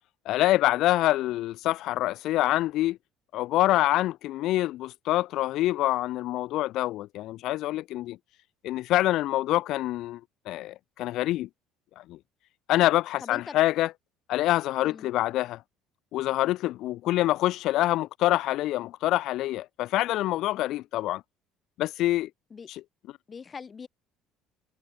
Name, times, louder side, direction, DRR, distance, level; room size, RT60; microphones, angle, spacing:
voice 1, 0.2-3.0 3.3-8.2 8.6-10.2 10.5-11.5 12.0-12.2 12.7-13.9 14.3-15.6 16.1-21.2 21.8-22.3 22.7-22.8, left 15 dB, 55° left, 1.1 m, -26 dB
voice 2, 13.2-13.6 14.8-15.1 22.5-22.7 23.3-23.9, left 6 dB, 20° left, 4.6 m, -41 dB
cardioid pair, 160°, 0 cm